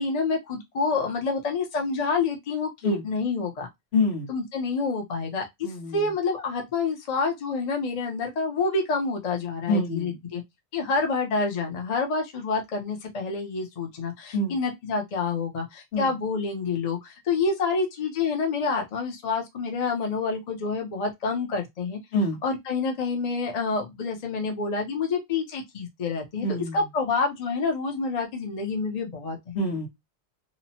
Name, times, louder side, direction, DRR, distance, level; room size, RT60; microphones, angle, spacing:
voice 1, 0.0-3.7 4.3-5.5 5.9-10.4 10.7-22.0 22.4-29.6, left 4 dB, 45° left, 0.7 m, -28 dB
voice 2, 3.9-4.3 5.6-6.1 9.7-10.2 14.3-14.6 15.9-16.1 22.1-22.4 26.4-26.8 29.5-29.9, left 1 dB, 75° left, 1.2 m, -26 dB
2.9 x 2.1 x 2.7 m
omnidirectional pair, 1.1 m